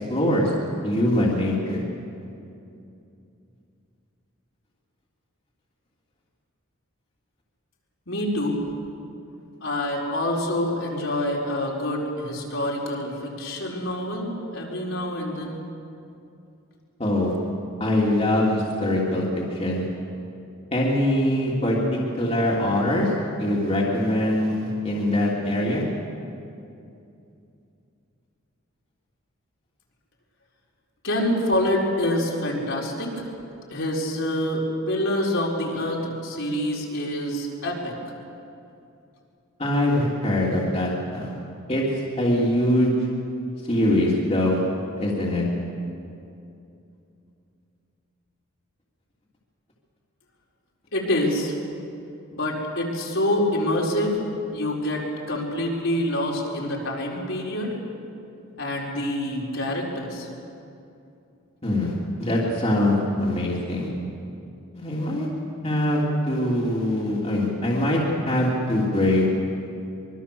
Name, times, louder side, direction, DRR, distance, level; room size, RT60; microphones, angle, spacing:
voice 1, 0.1-0.5 0.8-1.8 17.0-17.3 17.8-19.8 20.7-21.8 22.2-23.1 23.4-25.8 39.6-41.3 41.7-41.8 42.2-42.9 43.7-44.6 45.0-45.4 61.6-61.9 62.2-63.9 64.7-65.3 65.6-68.0 68.3-69.3, left 1 dB, 30° left, -4 dB, 3.2 m, -23 dB
voice 2, 8.1-8.6 9.6-15.6 31.0-33.2 33.7-37.9 50.9-51.5 52.3-54.3 54.5-57.7 58.6-60.3, left 1 dB, 65° left, -2 dB, 4.6 m, -26 dB
24.5 x 24.0 x 7.1 m, 2.6 s
head